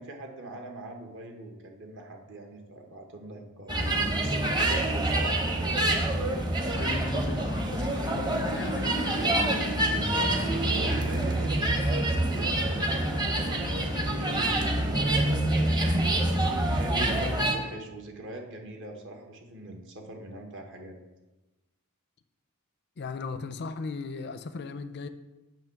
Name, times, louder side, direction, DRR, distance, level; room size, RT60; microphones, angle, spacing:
voice 1, 0.0-5.4 9.8-15.9 16.6-21.0, right 1 dB, 60° right, 2 dB, 1.2 m, -42 dB
sound 1, 3.7-17.5, right 1 dB, 20° right, 0.7 m, -26 dB
voice 2, 6.7-9.2 23.0-25.1, left 4 dB, 50° left, 11 dB, 0.5 m, -37 dB
8.8 x 3.1 x 5.8 m, 1.1 s
head